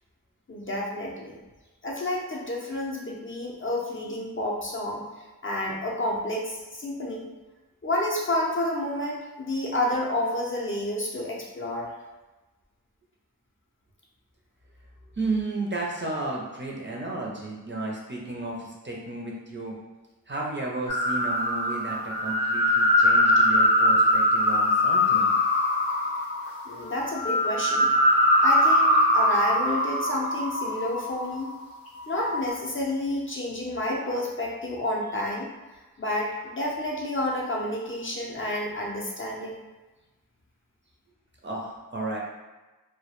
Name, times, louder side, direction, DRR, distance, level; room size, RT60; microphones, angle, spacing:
voice 1, 0.5-1.4 1.8-7.3 7.8-11.9 26.7-27.9 28.4-31.5 32.1-35.5 36.0-39.6, left 1 dB, 35° left, -3 dB, 0.5 m, -30 dB
voice 2, 15.2-19.8 20.3-25.3 41.4-42.2, right 2 dB, 35° right, -3 dB, 0.5 m, -33 dB
sound 1, 20.9-31.5 32.0-32.5, left 1 dB, 85° left, 0.5 m, -22 dB
2.2 x 2.1 x 2.9 m, 1.2 s
wide cardioid pair, 60°, 34 cm